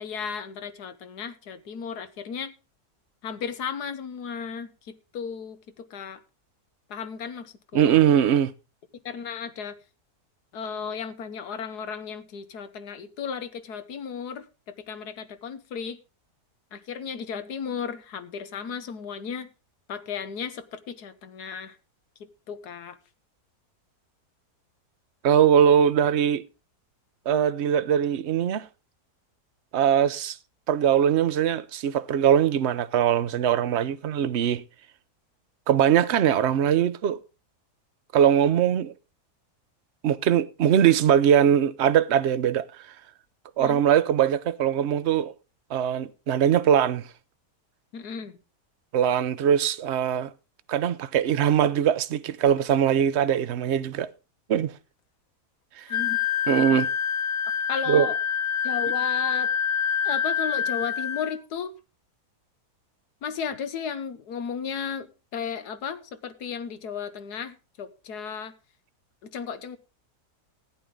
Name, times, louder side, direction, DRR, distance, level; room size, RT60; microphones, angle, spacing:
voice 1, 0.0-2.5 3.2-6.2 6.9-8.0 9.0-9.8 10.5-16.0 16.7-19.5 19.9-21.8 22.5-23.0 43.6-43.8 47.9-48.3 55.9-56.2 57.7-58.2 58.6-59.5 60.0-61.7 63.2-68.5 69.2-69.8, left 6 dB, 85° left, 1.6 m, -34 dB
voice 2, 7.7-8.5 25.2-26.5 27.3-28.7 29.7-30.4 30.7-34.6 35.7-37.2 38.1-38.9 40.0-42.6 43.6-45.3 45.7-47.1 48.9-50.3 50.7-54.1 54.5-54.7 55.8-55.9 56.5-56.9 57.9-58.1, right 9 dB, 55° right, 0.8 m, -21 dB
Wind instrument woodwind instrument, 55.9-61.4, left 8 dB, 60° left, 1.6 m, -26 dB
14.5 x 10.5 x 3.8 m
omnidirectional pair, 1.7 m